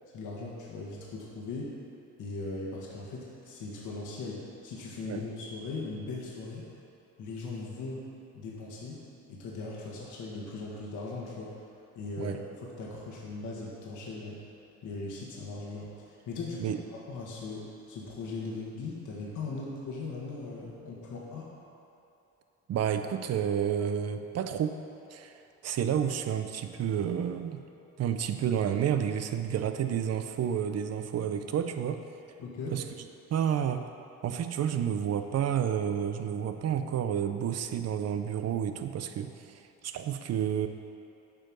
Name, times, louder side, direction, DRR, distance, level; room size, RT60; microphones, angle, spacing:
voice 1, 0.1-1.7 2.2-6.7 7.2-8.0 8.3-9.0 9.3-11.5 11.9-14.4 14.8-16.8 17.1-21.5 32.4-32.8, left 3 dB, 80° left, -4 dB, 1.5 m, -39 dB
voice 2, 22.7-24.8 25.1-25.3 25.6-27.6 28.0-32.0 32.7-32.8 33.3-33.8 34.2-39.5 39.8-40.7, right 9 dB, 55° right, 8 dB, 0.6 m, -30 dB
7.6 x 4.7 x 6.0 m, 2.7 s
cardioid pair, 90°, 30 cm